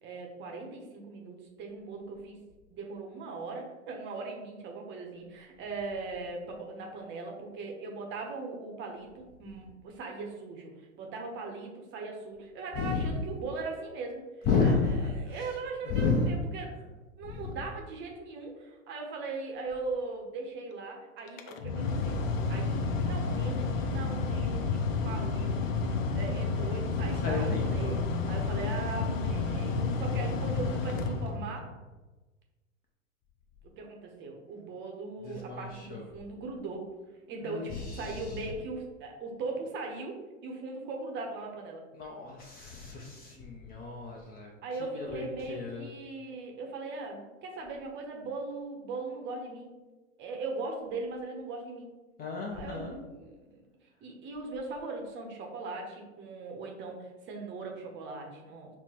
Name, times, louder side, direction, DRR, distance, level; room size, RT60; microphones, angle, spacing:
voice 1, 0.0-2.4 2.7-14.2 14.6-16.8 17.2-22.2 22.5-25.7 26.1-27.9 28.3-31.7 33.8-36.9 37.3-41.8 44.6-49.7 50.2-51.9 52.5-53.6 54.0-58.7, right 3 dB, 30° right, 1 dB, 0.7 m, -39 dB
voice 2, 12.8-13.1 14.5-15.3 15.9-16.3 17.2-17.4 27.2-28.0 35.2-36.0 37.4-38.5 41.9-44.5 44.9-45.2 45.5-45.8 52.2-53.0, left 4 dB, 25° left, -1 dB, 0.5 m, -32 dB
Mechanical fan, 21.3-31.8, left 4 dB, 70° left, 0.6 m, -30 dB
5.8 x 2.2 x 2.9 m, 1.2 s
hypercardioid pair, 110°, 41 cm